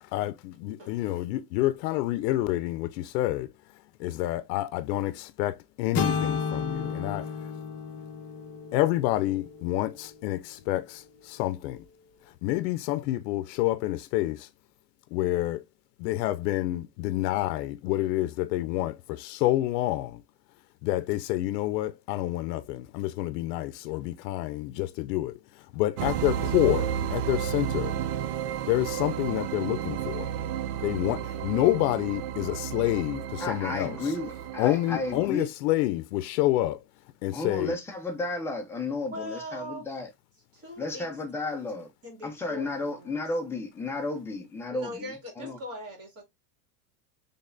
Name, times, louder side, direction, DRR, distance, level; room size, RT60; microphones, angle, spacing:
voice 1, 0.0-3.5 4.0-7.5 8.7-11.8 12.4-14.5 15.1-15.6 16.0-20.2 20.8-27.9 28.7-30.3 30.8-34.0 34.6-36.8 37.2-37.8, left 16 dB, 85° left, 0.6 m, -28 dB
sound 1, 5.9-10.0, left 6 dB, 30° left, 0.9 m, -32 dB
sound 2, 26.0-35.3, right 10 dB, 65° right, 0.6 m, -32 dB
voice 2, 33.4-35.5 37.3-40.1 40.8-41.9 42.2-45.6, left 2 dB, 5° left, 0.6 m, -33 dB
voice 3, 39.1-39.9 40.5-41.1 42.0-43.1 44.7-46.2, left 1 dB, 30° right, 2.5 m, -40 dB
4.0 x 3.4 x 2.5 m
supercardioid pair, 150°, 48 cm